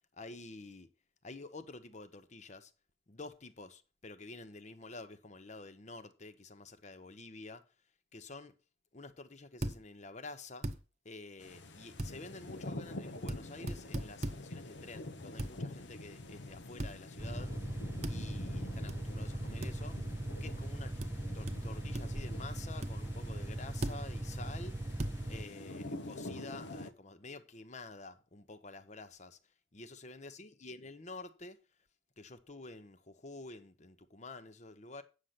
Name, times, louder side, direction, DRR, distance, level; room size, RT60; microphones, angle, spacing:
voice 1, 0.1-0.9 1.2-2.7 3.1-7.6 8.1-8.5 8.9-10.7 11.0-17.5 18.1-20.0 20.4-20.9 21.3-24.8 25.3-29.4 29.7-31.6 32.2-35.0, left 3 dB, 40° left, 0.9 m, -49 dB
sound 1, 9.6-9.8 10.6-10.8 12.0-12.1 13.3-13.4 13.7-14.4 15.4-15.5 16.8-17.0 18.0-18.2 18.9-19.0 19.6-19.7 21.0-21.1 21.5-21.6 21.9-22.3 22.8-22.9 23.8-24.0 25.0-25.2, right 1 dB, 35° right, 0.8 m, -37 dB
sound 2, 11.4-26.9, left 2 dB, 70° left, 0.9 m, -47 dB
sound 3, 17.2-25.4, right 1 dB, 15° right, 0.4 m, -39 dB
9.1 x 6.6 x 5.8 m
head